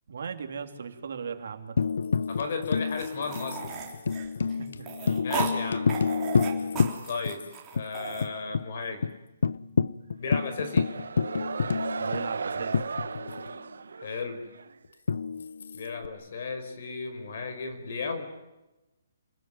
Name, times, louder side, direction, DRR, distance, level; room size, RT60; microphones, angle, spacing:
voice 1, 0.1-1.8 4.1-4.2 4.6-4.9 12.0-12.8, right 6 dB, 55° right, 6 dB, 3.1 m, -37 dB
Tambourine, 1.8-7.5 7.8-7.9 8.2-8.7 9.0-9.1 9.4-13.5 15.1-16.1, left 5 dB, 65° left, 0.8 m, -29 dB
voice 2, 2.3-3.7 5.2-5.9 7.1-7.5 7.7-9.1 10.2-10.9 14.0-14.4 15.7-18.3, left 4 dB, 40° left, 9 dB, 5.0 m, -34 dB
sound 1, 3.0-5.5 5.9-8.3, right 7 dB, 10° right, 3.7 m, -36 dB
sound 2, 10.3-14.8, right 5 dB, 80° right, 1.3 m, -36 dB
28.5 x 20.5 x 9.4 m, 1.0 s
hypercardioid pair, 180°, 0 cm